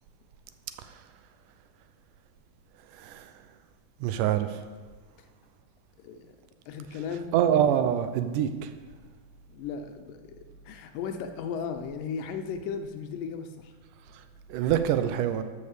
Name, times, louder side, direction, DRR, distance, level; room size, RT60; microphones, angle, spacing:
voice 1, 4.0-4.5 7.3-8.5 14.5-15.4, right 10 dB, 80° right, 10 dB, 2.1 m, -24 dB
voice 2, 6.0-6.4 6.7-7.3 9.5-13.7, left 6 dB, 90° left, 7 dB, 2.5 m, -36 dB
12.5 x 5.4 x 6.7 m, 1.4 s
omnidirectional pair, 3.8 m